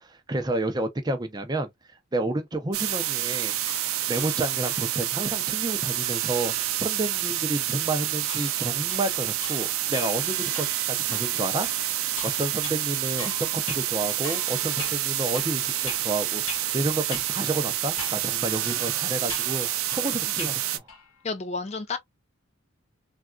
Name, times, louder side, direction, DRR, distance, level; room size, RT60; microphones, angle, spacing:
voice 1, 0.0-1.7 2.1-3.5 4.1-20.8, right 2 dB, 20° right, 0.5 m, -30 dB
sound 1, 2.7-20.8, right 13 dB, 75° right, 0.5 m, -28 dB
sound 2, 3.6-5.2 8.3-16.8 17.1-17.3 18.0-18.3 18.6-20.6 20.9-21.2, left 4 dB, 80° left, 0.9 m, -42 dB
voice 2, 21.2-22.0, left 4 dB, 30° left, 0.4 m, -30 dB
3.4 x 2.4 x 2.2 m
head